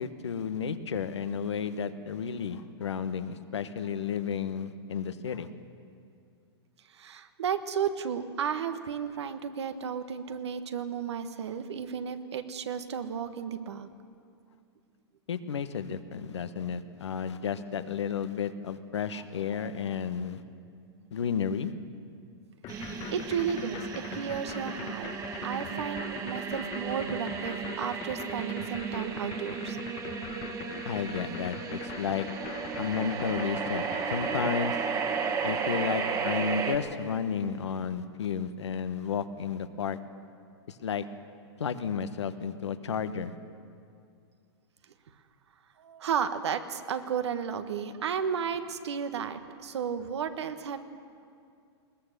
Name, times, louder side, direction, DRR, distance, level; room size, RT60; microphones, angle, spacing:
voice 1, 0.0-5.5 15.3-20.4 21.1-21.7 30.8-32.3 32.8-34.7 35.4-40.0 40.7-41.0 41.6-43.3, left 7 dB, 80° left, 10 dB, 1.3 m, -32 dB
voice 2, 6.9-13.9 19.5-19.8 22.7-23.8 24.1-25.1 25.4-29.8 45.8-50.8, right 7 dB, 75° right, 9 dB, 1.5 m, -33 dB
sound 1, 22.6-34.5, left 11 dB, 35° left, 1.1 m, -43 dB
sound 2, 22.7-36.8, right 5 dB, 25° right, 1.7 m, -34 dB
21.0 x 19.0 x 6.8 m, 2.3 s
hypercardioid pair, 120°, 14 cm